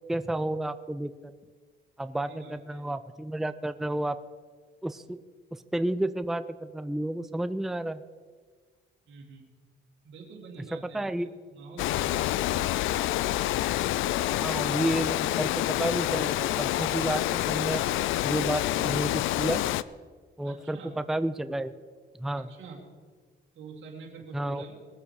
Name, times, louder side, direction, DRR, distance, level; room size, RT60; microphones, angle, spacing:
voice 1, 0.1-1.3 2.0-4.2 4.8-5.2 5.5-8.0 10.9-11.3 12.7-12.8 14.4-17.9 18.2-19.6 20.4-21.7 22.2-22.5 24.3-24.6, right 1 dB, ahead, 12 dB, 0.5 m, -31 dB
voice 2, 2.2-2.8 9.1-9.4 10.0-13.1 20.4-20.9 22.3-22.8 23.5-24.8, right 4 dB, 70° right, -2 dB, 2.4 m, -46 dB
Water, 11.8-19.8, left 15 dB, 90° left, 0.4 m, -27 dB
20.0 x 7.6 x 4.9 m, 1.5 s
cardioid pair, 90°, 20 cm